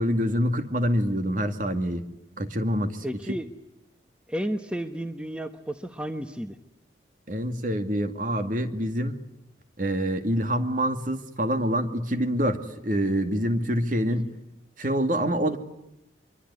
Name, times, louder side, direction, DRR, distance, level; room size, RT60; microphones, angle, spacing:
voice 1, 0.0-2.0 2.4-3.0 7.3-9.2 9.8-14.3 14.8-15.6, equal, 45° right, 8 dB, 2.2 m, -26 dB
voice 2, 3.0-3.5 4.3-6.6 14.1-14.2, equal, 5° right, 7 dB, 1.1 m, -32 dB
25.0 x 24.0 x 9.8 m, 0.86 s
head